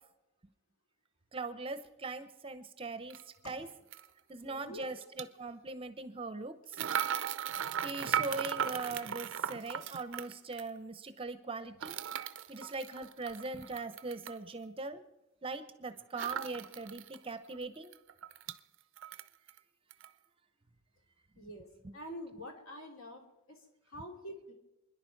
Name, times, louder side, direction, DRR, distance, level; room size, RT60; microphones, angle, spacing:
voice 1, 1.3-3.2 3.5-3.7 4.3-6.5 7.8-12.0 12.5-15.0 15.4-17.9, right 3 dB, 25° right, 10 dB, 0.8 m, -40 dB
sound 1, 3.1-3.2 3.9-4.1 5.0-5.2 6.7-10.7 11.8-14.4 16.2-17.2 17.5-17.6 17.9-18.6 19.0-19.6 19.9-20.1, right 9 dB, 55° right, 0.6 m, -37 dB
voice 2, 4.4-5.0 21.4-21.7 21.9-23.6 23.9-24.5, equal, 65° left, 2 dB, 3.0 m, -46 dB
28.0 x 10.5 x 4.7 m, 0.96 s
head